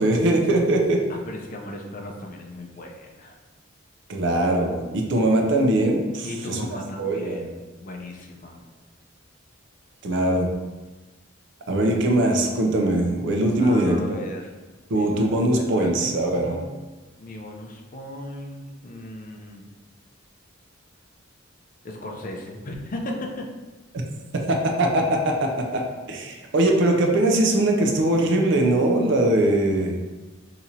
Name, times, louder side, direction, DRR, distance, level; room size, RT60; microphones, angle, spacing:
voice 1, 0.0-1.0 4.1-6.6 7.0-7.5 10.0-10.5 11.7-14.2 14.9-16.6 24.3-25.8 26.1-30.0, right 1 dB, 65° right, 2 dB, 0.5 m, -21 dB
voice 2, 1.1-3.4 6.2-8.6 13.6-14.5 15.0-16.7 17.2-19.7 21.8-23.5, left 1 dB, 45° left, 2 dB, 0.5 m, -36 dB
2.8 x 2.5 x 4.2 m, 1.2 s
head